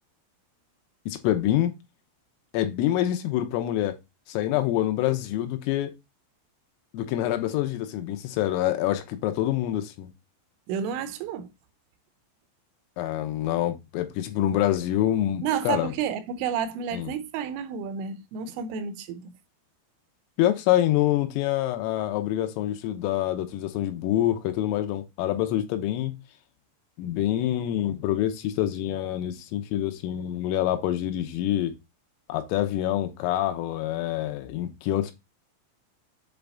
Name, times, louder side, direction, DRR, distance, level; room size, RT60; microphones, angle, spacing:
voice 1, 1.1-1.7 2.5-4.0 4.3-5.9 6.9-10.1 13.0-15.9 16.9-17.1 20.4-26.1 27.0-31.7 32.3-35.1, left 13 dB, 85° left, 3.4 m, -26 dB
voice 2, 10.7-11.5 15.4-19.3, right 8 dB, 85° right, 3.0 m, -30 dB
8.1 x 3.4 x 3.8 m
omnidirectional pair, 5.9 m